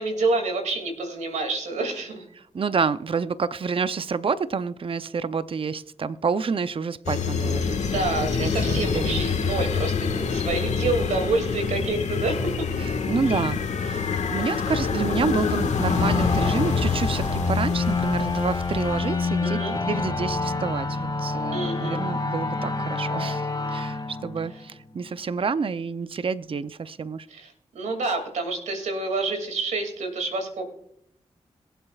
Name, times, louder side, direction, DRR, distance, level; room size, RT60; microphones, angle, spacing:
voice 1, 0.0-2.3 7.9-12.7 13.3-13.5 19.4-19.8 21.5-22.1 27.3-30.6, right 3 dB, 85° right, 4 dB, 2.5 m, -28 dB
voice 2, 2.5-7.9 8.2-9.2 12.8-27.3, right 5 dB, 50° right, 14 dB, 0.6 m, -29 dB
sound 1, 7.1-19.4, left 5 dB, 80° left, 1.6 m, -26 dB
sound 2, 15.7-25.1, left 3 dB, 35° left, 2.3 m, -27 dB
22.5 x 7.8 x 2.4 m, 0.73 s
supercardioid pair, 45°, 12 cm